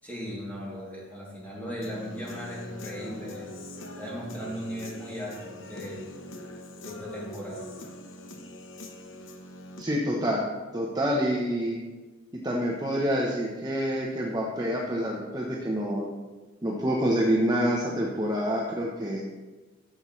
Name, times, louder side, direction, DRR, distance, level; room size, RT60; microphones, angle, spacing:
voice 1, 0.0-3.5 4.0-6.0 6.8-7.6, equal, 10° left, -6 dB, 2.8 m, -37 dB
Human voice / Guitar, 1.8-9.8, left 1 dB, 80° left, 0.9 m, -42 dB
voice 2, 9.8-10.5 10.7-11.8 12.4-16.1 16.6-19.2, equal, 20° right, -3 dB, 0.9 m, -27 dB
12.0 x 7.1 x 3.2 m, 1.3 s
head